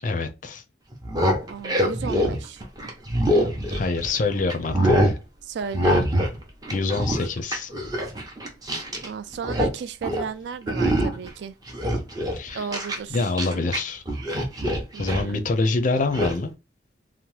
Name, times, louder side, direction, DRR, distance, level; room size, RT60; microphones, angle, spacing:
voice 1, 0.0-0.6 3.7-5.2 6.7-7.7 12.3-12.7 13.1-14.0 15.0-16.5, left 3 dB, 45° left, 0.4 m, -26 dB
sound 1, 0.9-4.2 4.5-5.2 5.7-6.4 6.6-9.1 9.3-9.7 10.0-10.3 10.7-11.3 11.7-13.8 14.1-15.3 16.1-16.3, equal, 20° right, 0.6 m, -24 dB
voice 2, 1.5-2.6 5.4-6.0 9.0-11.6 12.5-13.2 14.9-15.5, right 6 dB, 70° right, 0.3 m, -34 dB
2.8 x 2.0 x 3.0 m
head